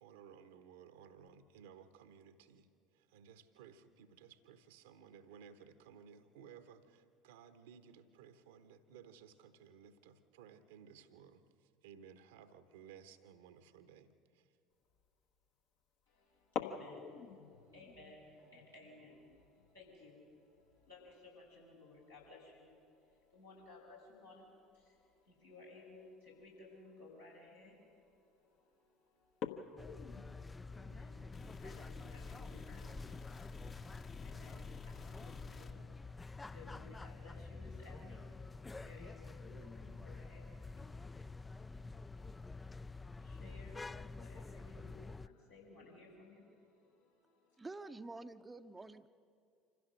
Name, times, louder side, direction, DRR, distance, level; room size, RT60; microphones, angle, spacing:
voice 1, 0.0-2.7 2.9-11.4 11.8-14.1 14.3-14.4, right 7 dB, 70° right, 11 dB, 1.0 m, -58 dB
sound 1, 14.9-15.2 16.4-22.8 23.1-23.2 23.6-23.9 24.9-25.1 25.8-25.9 26.4-26.5 26.8-27.2 27.8-28.2 28.6-28.7 29.2-31.6, left 7 dB, 55° left, 1.2 m, -48 dB
voice 2, 16.1-47.7, left 2 dB, 90° left, -7 dB, 6.3 m, -59 dB
sound 2, 29.8-45.3, left 3 dB, 15° left, 0.4 m, -48 dB
sound 3, 31.3-35.7, left 6 dB, 35° left, 1.1 m, -53 dB
voice 3, 47.6-49.1, right 3 dB, 15° right, 11 dB, 0.7 m, -48 dB
26.0 x 15.5 x 6.5 m, 2.5 s
figure-of-eight pair, 65°, 0 cm